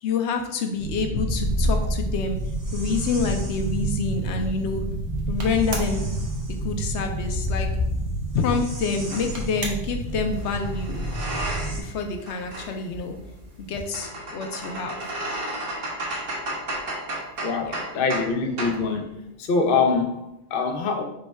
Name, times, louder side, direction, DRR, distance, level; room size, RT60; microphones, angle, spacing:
voice 1, 0.0-2.4 2.7-4.9 5.3-6.1 6.5-7.7 8.3-11.1 11.8-13.2 13.6-15.0 17.6-17.8, left 4 dB, 85° left, 5 dB, 0.9 m, -27 dB
sound 1, 0.8-11.8, right 1 dB, 20° right, 0.6 m, -28 dB
sound 2, 1.3-14.0, right 2 dB, 75° right, 1.2 m, -43 dB
sound 3, 9.1-9.3 10.3-11.9 12.2-18.3 18.6-18.8, right 1 dB, 55° right, 1.2 m, -33 dB
voice 2, 17.4-19.1 19.4-21.0, left 4 dB, 60° left, 3 dB, 0.8 m, -24 dB
5.3 x 2.2 x 4.6 m, 0.84 s
omnidirectional pair, 1.1 m